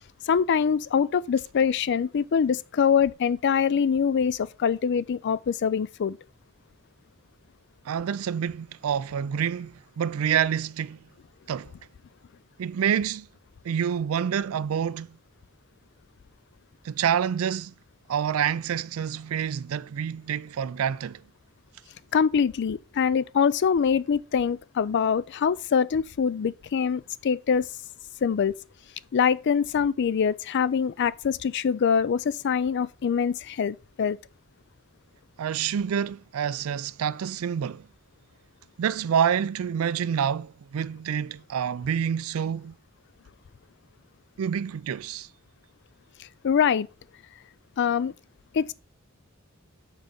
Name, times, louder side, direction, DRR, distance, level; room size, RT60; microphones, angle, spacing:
voice 1, 0.2-6.2 22.1-27.7 28.2-28.6 29.1-34.2 46.4-46.9 47.8-48.1 48.5-48.7, left 7 dB, 55° left, 0.4 m, -24 dB
voice 2, 7.9-11.0 11.5-11.7 12.6-13.3 13.6-15.1 16.8-17.7 18.1-21.2 35.4-37.9 38.8-42.7 44.4-45.3, right 8 dB, 85° right, 0.4 m, -27 dB
5.9 x 4.9 x 5.2 m
head